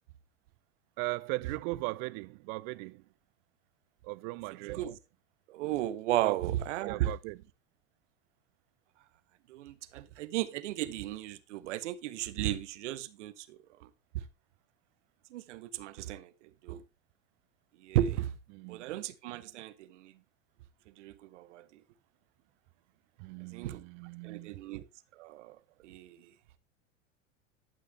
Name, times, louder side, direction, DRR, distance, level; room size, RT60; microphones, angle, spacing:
voice 1, 1.0-3.0 4.0-4.8 6.2-6.4 6.9-7.4 18.5-18.9 23.2-24.6, right 23 dB, 50° right, 0.5 m, -38 dB
voice 2, 4.6-4.9 5.5-7.1 9.5-13.9 14.1-14.2 15.3-16.3 16.6-16.8 17.8-18.3 18.7-20.1 21.0-21.8 23.5-23.8 24.2-24.8 25.1-25.6 25.8-26.3, right 13 dB, 70° right, 0.9 m, -35 dB
11.5 x 5.7 x 3.2 m
hypercardioid pair, 90°, 37 cm